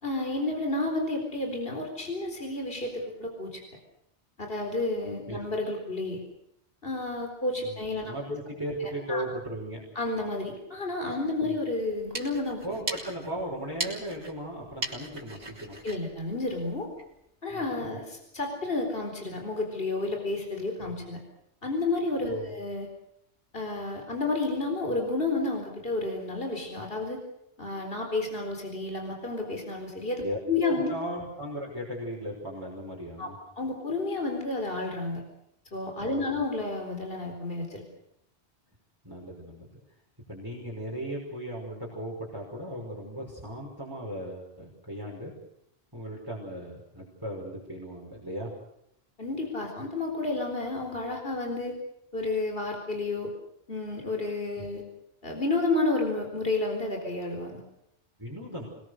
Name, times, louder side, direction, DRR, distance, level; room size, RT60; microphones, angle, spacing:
voice 1, 0.0-3.6 4.4-6.2 6.8-8.4 9.1-9.2 10.0-12.6 15.8-16.9 17.4-21.2 21.6-22.9 23.5-27.2 27.6-30.9 33.2-33.3 33.6-35.2 35.7-37.8 49.2-51.8 52.1-53.3 53.7-54.8 55.2-57.6, left 2 dB, 55° left, 2 dB, 4.4 m, -31 dB
voice 2, 7.6-9.8 11.4-11.6 12.6-15.8 17.5-18.0 22.3-22.5 30.2-33.3 36.0-36.4 39.0-39.7 40.3-45.3 45.9-48.5 54.6-54.7 58.2-58.6, right 1 dB, 20° right, -3 dB, 5.7 m, -37 dB
sound 1, 11.8-17.2, right 2 dB, 85° right, 4.0 m, -39 dB
27.0 x 21.0 x 6.6 m, 0.77 s
omnidirectional pair, 1.1 m